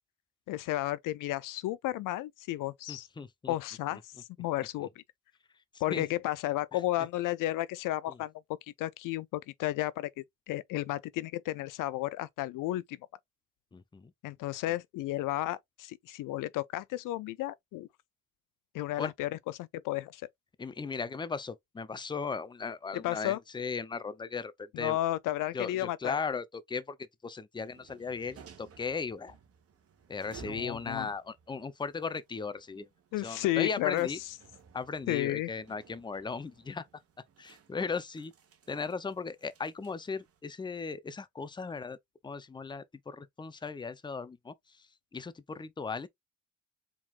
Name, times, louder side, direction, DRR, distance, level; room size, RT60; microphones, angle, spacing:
voice 1, 0.5-3.1 3.5-4.9 5.8-13.0 14.2-17.9 18.7-20.2 22.9-23.4 24.7-26.1 30.4-31.1 33.1-34.3 35.1-35.5, left 15 dB, 65° left, 0.5 m, -33 dB
voice 2, 2.9-3.5 5.9-6.0 13.7-14.1 19.0-19.1 20.6-25.0 25.5-27.0 27.2-29.3 30.1-32.9 33.2-34.2 34.7-36.8 37.4-38.3 38.7-42.0 42.2-44.5 45.1-46.1, left 5 dB, 15° left, 0.6 m, -37 dB
sound 1, 27.6-40.4, right 6 dB, 45° right, 1.3 m, -57 dB
4.6 x 3.7 x 2.4 m
supercardioid pair, 80°, 34 cm